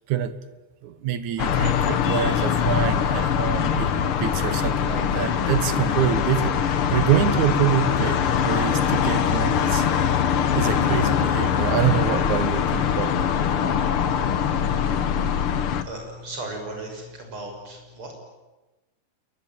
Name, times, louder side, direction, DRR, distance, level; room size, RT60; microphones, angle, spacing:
voice 1, 0.8-9.9 10.5-13.3, right 10 dB, 60° right, 13 dB, 2.2 m, -26 dB
sound 1, 1.4-15.8, left 8 dB, 80° left, 1.2 m, -22 dB
voice 2, 15.6-18.1, right 2 dB, 30° right, 2 dB, 7.0 m, -36 dB
28.0 x 22.5 x 9.1 m, 1.1 s
omnidirectional pair, 4.6 m